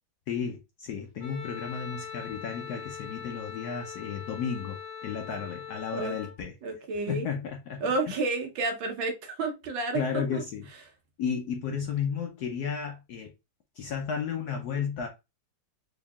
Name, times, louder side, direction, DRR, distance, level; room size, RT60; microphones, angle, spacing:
voice 1, 0.3-6.5 7.1-8.2 9.9-10.7 11.2-13.3 13.8-15.1, left 7 dB, 75° left, 0.9 m, -33 dB
Wind instrument woodwind instrument, 1.2-6.4, left 7 dB, 25° left, 0.7 m, -41 dB
voice 2, 6.6-7.3 7.8-10.4, right 3 dB, 75° right, 1.6 m, -31 dB
3.9 x 3.5 x 2.2 m
omnidirectional pair, 2.2 m